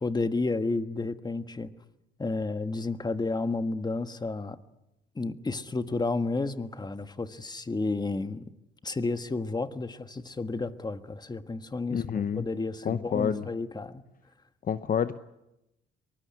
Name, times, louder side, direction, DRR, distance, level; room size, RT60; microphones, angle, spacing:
voice 1, 0.0-1.7 2.2-4.6 5.1-8.4 8.8-14.0, left 3 dB, 20° left, 1.5 m, -31 dB
voice 2, 11.9-12.5 12.8-13.5 14.6-15.2, left 8 dB, 45° left, 0.8 m, -28 dB
23.5 x 20.0 x 9.6 m
cardioid pair, 90°, 20 cm